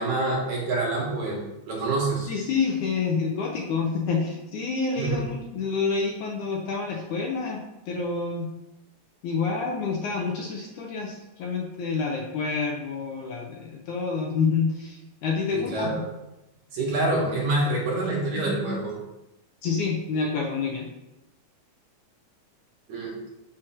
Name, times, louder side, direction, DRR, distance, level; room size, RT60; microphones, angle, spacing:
voice 1, 0.0-1.4 1.7-2.3 5.0-5.2 15.5-16.0 16.7-18.9 22.9-23.1, right 2 dB, 60° right, -4 dB, 2.5 m, -26 dB
voice 2, 2.3-7.6 7.9-8.5 9.2-15.9 19.6-20.9, left 5 dB, 75° left, 1 dB, 1.9 m, -28 dB
6.2 x 3.1 x 5.8 m, 0.94 s
omnidirectional pair, 3.9 m